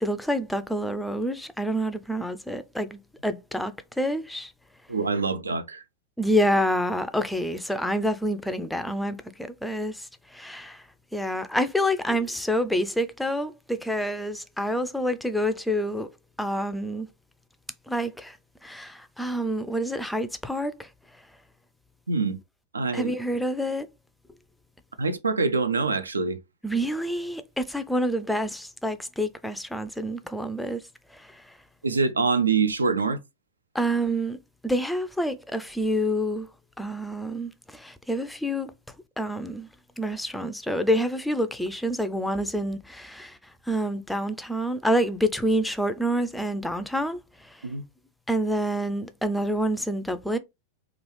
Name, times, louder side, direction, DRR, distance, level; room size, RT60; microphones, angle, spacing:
voice 1, 0.0-4.5 6.2-10.8 11.1-16.1 16.4-17.1 17.9-18.4 18.6-20.9 22.9-23.9 26.6-30.8 31.1-31.5 33.7-34.4 34.6-36.5 36.8-38.7 39.2-39.7 40.0-43.4 43.7-47.6 48.3-50.4, equal, 5° left, 0.3 m, -27 dB
voice 2, 4.9-5.8 22.1-22.4 22.7-23.1 25.0-26.4 31.8-33.2 47.6-47.8, right 4 dB, 75° right, 0.3 m, -25 dB
3.0 x 2.4 x 3.0 m
figure-of-eight pair, 90°, 0 cm